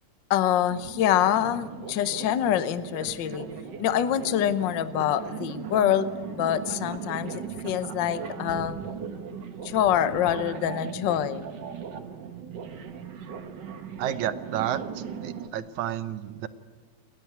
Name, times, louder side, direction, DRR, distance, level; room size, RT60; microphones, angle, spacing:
voice 1, 0.3-3.5 3.8-8.8 9.6-11.5, left 11 dB, 80° left, 12 dB, 1.0 m, -25 dB
sound 1, 0.7-15.5, right 7 dB, 50° right, 1.4 m, -38 dB
voice 2, 14.0-16.5, right 11 dB, 80° right, 11 dB, 2.2 m, -31 dB
29.0 x 10.5 x 9.5 m, 1.3 s
omnidirectional pair, 3.4 m